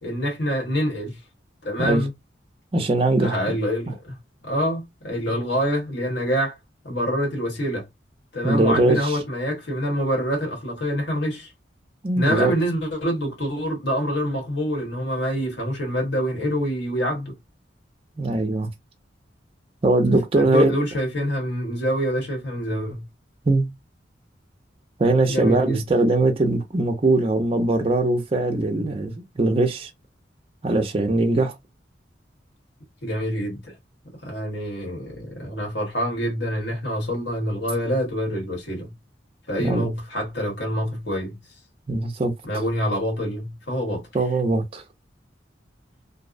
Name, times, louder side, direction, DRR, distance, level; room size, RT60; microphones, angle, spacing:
voice 1, 0.0-1.2 1.6-2.1 3.2-4.2 4.4-6.6 6.8-7.9 8.3-11.5 12.1-17.3 20.0-23.0 25.3-25.8 33.0-33.7 34.2-38.9 39.5-41.4 42.4-44.0, equal, 70° left, 1.3 m, -26 dB
voice 2, 2.7-3.6 8.4-9.2 12.0-12.5 18.2-18.7 19.8-20.7 23.5-23.7 25.0-29.9 30.6-31.5 39.6-39.9 41.9-42.3 44.1-44.8, right 2 dB, 30° right, 0.5 m, -21 dB
2.6 x 2.0 x 2.5 m
head